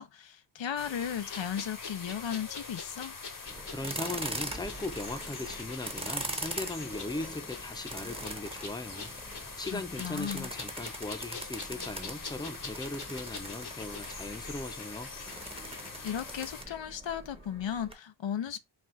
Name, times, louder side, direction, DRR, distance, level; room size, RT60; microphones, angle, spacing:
voice 1, 0.0-3.2 9.7-10.5 16.0-18.6, left 9 dB, 85° left, 0.6 m, -36 dB
sound 1, 0.8-16.6, left 4 dB, 50° left, 0.9 m, -45 dB
sound 2, 1.3-16.8 17.0-17.2, left 4 dB, 65° left, 1.0 m, -46 dB
sound 3, 3.5-17.9, right 1 dB, 15° right, 0.9 m, -42 dB
voice 2, 3.7-9.1 9.6-15.1, left 2 dB, 10° left, 0.6 m, -38 dB
4.3 x 2.4 x 3.8 m
wide cardioid pair, 75°, 43 cm